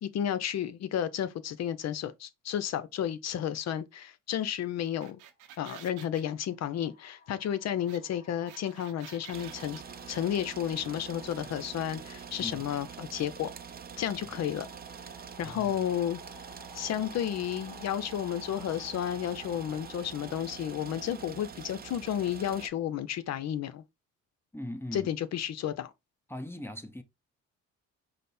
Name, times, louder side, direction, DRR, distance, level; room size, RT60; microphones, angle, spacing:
voice 1, 0.0-5.2 5.6-9.8 10.1-13.5 14.0-14.7 15.4-16.2 16.7-23.8 24.9-25.9, left 10 dB, 60° left, 0.6 m, -32 dB
sound 1, 4.8-6.2 7.9-8.0 8.2-10.0, right 10 dB, 80° right, 0.8 m, -50 dB
sound 2, 5.3-5.5 6.4-23.1, equal, 30° left, 3.2 m, -54 dB
sound 3, 9.3-22.7, right 7 dB, 30° right, 0.5 m, -45 dB
voice 2, 15.4-15.7 24.5-25.1 26.3-27.0, left 1 dB, 10° left, 0.7 m, -40 dB
5.1 x 2.0 x 4.3 m
cardioid pair, 90°, 30 cm